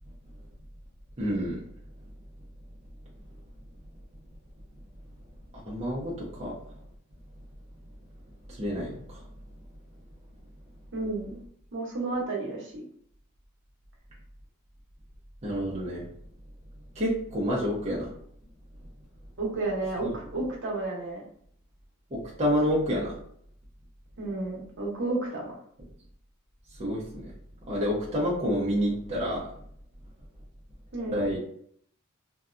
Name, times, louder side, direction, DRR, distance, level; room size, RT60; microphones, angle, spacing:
voice 1, 1.2-1.6 5.6-6.5 8.5-9.2 15.4-16.0 17.0-18.1 22.1-23.2 26.8-27.3 27.7-29.5 31.1-31.4, equal, 30° right, -5 dB, 0.6 m, -28 dB
voice 2, 10.9-11.4 11.7-12.8 19.4-21.2 24.2-25.5 30.9-31.2, right 2 dB, 60° right, -2 dB, 0.8 m, -32 dB
2.6 x 2.3 x 2.4 m, 0.64 s
head